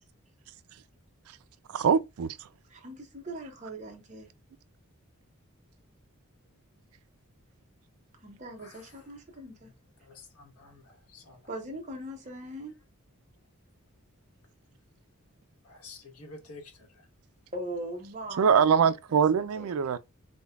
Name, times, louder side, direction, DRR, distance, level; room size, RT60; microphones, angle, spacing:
voice 1, 1.7-2.5 18.4-20.0, right 7 dB, 75° right, 0.4 m, -23 dB
voice 2, 2.7-4.3 8.2-9.7 11.5-12.8 17.5-19.2 19.5-19.7, right 1 dB, 35° right, 0.8 m, -40 dB
voice 3, 8.6-9.0 9.6-9.7 10.0-11.5 15.6-17.1, left 3 dB, 90° left, 1.2 m, -50 dB
5.1 x 2.2 x 2.3 m
head